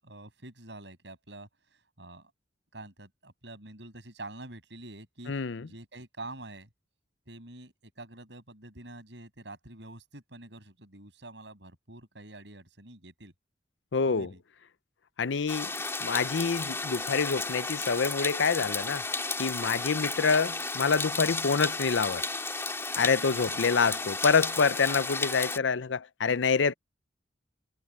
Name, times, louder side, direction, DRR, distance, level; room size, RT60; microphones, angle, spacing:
voice 1, 0.0-2.3 2.7-5.3 5.6-6.7 7.3-13.3 14.1-14.4 23.3-23.6, right 2 dB, 70° right, 8.0 m, -47 dB
voice 2, 5.3-5.7 13.9-14.3 15.2-15.7 16.0-19.0 19.4-22.2 23.0-26.7, left 5 dB, 85° left, 0.6 m, -26 dB
sound 1, 15.5-25.6, left 3 dB, 15° left, 3.1 m, -33 dB
head